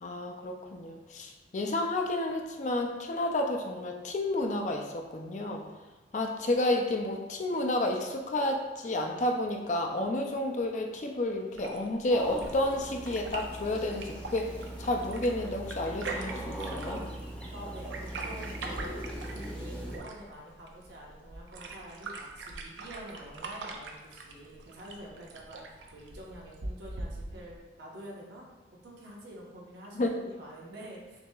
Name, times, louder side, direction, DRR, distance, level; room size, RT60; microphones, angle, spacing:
voice 1, 0.0-5.6 6.1-14.5 14.8-17.0 30.0-30.1, left 1 dB, 40° left, 3 dB, 0.4 m, -31 dB
sound 1, 11.5-27.6, right 3 dB, 90° right, 0.5 m, -43 dB
sound 2, 12.1-20.0, right 1 dB, 5° left, 0.7 m, -40 dB
voice 2, 17.5-17.9 18.2-28.5 28.8-31.2, right 1 dB, 70° right, -3 dB, 1.0 m, -47 dB
6.6 x 2.8 x 2.3 m, 1.2 s
head